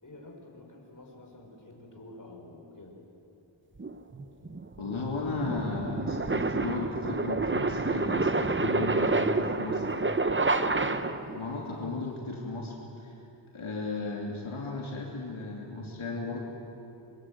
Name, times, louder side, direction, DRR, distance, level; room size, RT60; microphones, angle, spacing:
voice 1, 0.0-3.0 9.2-10.7, left 1 dB, 40° left, 0 dB, 5.2 m, -48 dB
sound 1, 3.8-11.4, right 3 dB, 25° right, 0.9 m, -28 dB
voice 2, 4.8-9.8 10.7-13.1 13.5-16.4, left 3 dB, 85° left, -2 dB, 3.0 m, -35 dB
26.5 x 23.0 x 7.7 m, 2.8 s
wide cardioid pair, 95°, 47 cm